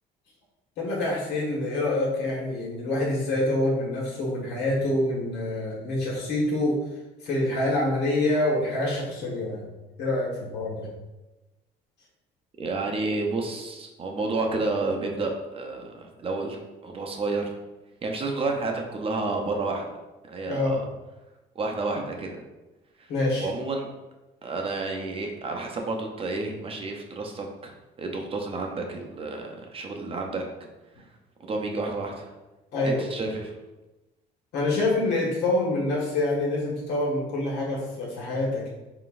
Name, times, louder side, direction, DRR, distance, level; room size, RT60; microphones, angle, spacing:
voice 1, 0.8-6.8 7.2-9.6 10.0-10.9 20.5-20.8 23.1-23.5 32.7-33.0 34.5-38.7, left 2 dB, 85° left, -4 dB, 1.5 m, -26 dB
voice 2, 12.6-17.5 18.0-19.8 20.3-20.8 21.5-22.4 23.0-23.1 23.4-23.9 24.4-30.4 31.0-31.1 31.4-32.3 32.8-33.6, right 3 dB, 35° right, 2 dB, 0.6 m, -30 dB
3.9 x 3.9 x 2.5 m, 1.1 s
cardioid pair, 110°, 17 cm